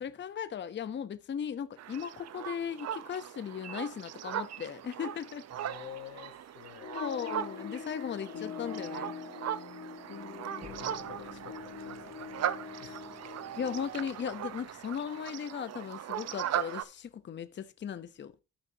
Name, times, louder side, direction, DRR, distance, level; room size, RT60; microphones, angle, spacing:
voice 1, 0.0-5.4 6.9-9.1 13.6-18.3, left 8 dB, 40° left, 0.7 m, -37 dB
sound 1, 1.8-16.8, right 10 dB, 60° right, 0.7 m, -39 dB
voice 2, 5.5-7.0 10.6-13.1, left 11 dB, 90° left, 1.1 m, -50 dB
sound 2, 6.8-14.0, left 7 dB, 75° left, 3.3 m, -44 dB
sound 3, 10.6-15.4, right 1 dB, 25° right, 2.0 m, -58 dB
14.0 x 5.6 x 2.7 m
cardioid pair, 90°, 30 cm